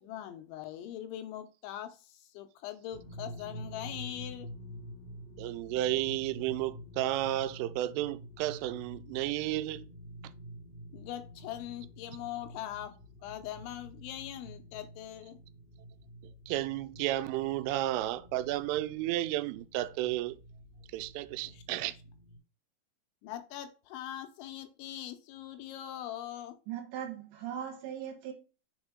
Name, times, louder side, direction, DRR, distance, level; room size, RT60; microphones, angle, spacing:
voice 1, 0.0-4.5 10.9-12.9 13.2-15.4 21.4-21.8 23.2-26.6, left 12 dB, 80° left, 2.9 m, -42 dB
sound 1, 2.9-22.4, equal, 35° right, 1.4 m, -48 dB
voice 2, 5.4-9.8 16.5-20.4 20.9-21.9, right 15 dB, 90° right, 3.1 m, -32 dB
voice 3, 26.7-28.3, right 9 dB, 70° right, 3.2 m, -39 dB
7.0 x 4.3 x 3.6 m
omnidirectional pair, 5.6 m